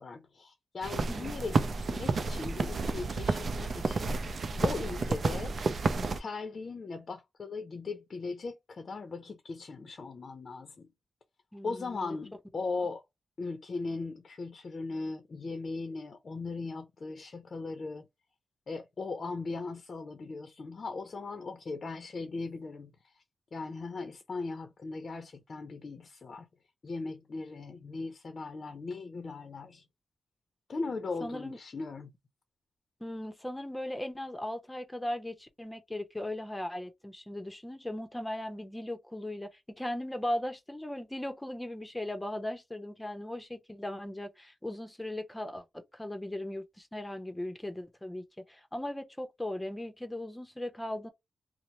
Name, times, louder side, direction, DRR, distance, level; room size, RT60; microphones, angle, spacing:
voice 1, 0.0-5.6 6.1-10.9 11.6-13.0 13.4-18.1 18.7-23.2 23.5-26.5 26.8-29.8 30.7-32.1, left 3 dB, 50° left, 0.5 m, -38 dB
sound 1, 0.8-6.2, right 4 dB, 55° right, 0.5 m, -31 dB
voice 2, 1.1-1.4 11.5-12.2 31.2-31.6 33.0-51.1, left 1 dB, 10° left, 0.7 m, -38 dB
2.7 x 2.0 x 3.0 m
cardioid pair, 90°, 0 cm